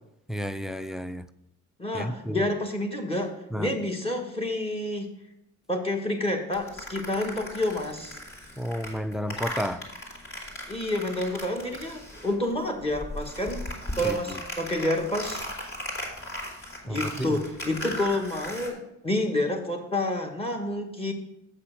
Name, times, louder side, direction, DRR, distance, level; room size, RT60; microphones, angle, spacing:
voice 1, 0.3-1.2 1.9-2.4 3.5-3.7 8.6-9.8 14.0-14.4 16.9-17.4, equal, ahead, 14 dB, 0.4 m, -32 dB
voice 2, 1.8-5.1 5.7-8.2 10.7-13.6 14.0-15.5 16.8-21.1, left 1 dB, 20° left, 5 dB, 1.5 m, -29 dB
sound 1, 6.5-12.5 12.8-18.7, left 1 dB, 45° left, 3.0 m, -37 dB
7.8 x 5.9 x 6.4 m, 0.83 s
cardioid pair, 90°, 30 cm